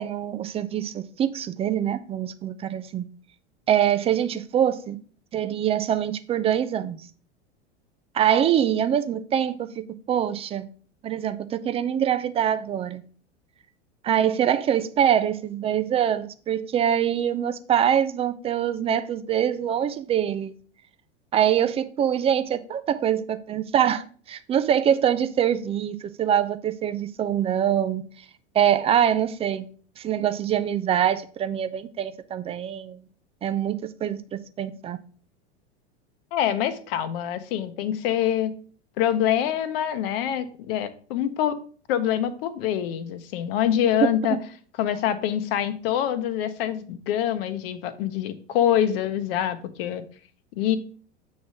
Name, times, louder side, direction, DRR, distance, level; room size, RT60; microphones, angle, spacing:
voice 1, 0.0-3.1 3.7-5.0 5.3-7.0 8.1-10.7 11.0-13.0 14.0-20.5 21.3-28.0 28.6-29.7 30.0-33.0 33.4-35.0 44.3-44.4, right 9 dB, 20° right, 0.3 m, -24 dB
voice 2, 36.3-38.5 39.0-41.5 41.9-44.4 44.8-50.0 50.6-50.8, left 10 dB, 55° left, 0.9 m, -25 dB
7.1 x 3.2 x 5.4 m
hypercardioid pair, 90°, 33 cm